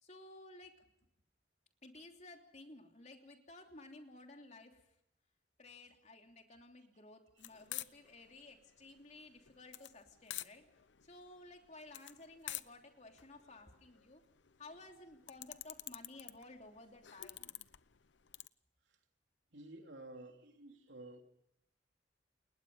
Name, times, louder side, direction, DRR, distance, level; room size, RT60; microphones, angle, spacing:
voice 1, 0.0-0.8 1.8-4.8 5.6-10.6 11.0-14.2 14.6-17.5, left 2 dB, 40° left, 3 dB, 3.1 m, -55 dB
sound 1, 7.4-18.5, left 14 dB, 75° left, 0.8 m, -49 dB
voice 2, 19.5-21.2, right 2 dB, 75° right, 4 dB, 3.3 m, -52 dB
29.5 x 20.5 x 5.5 m, 0.79 s
head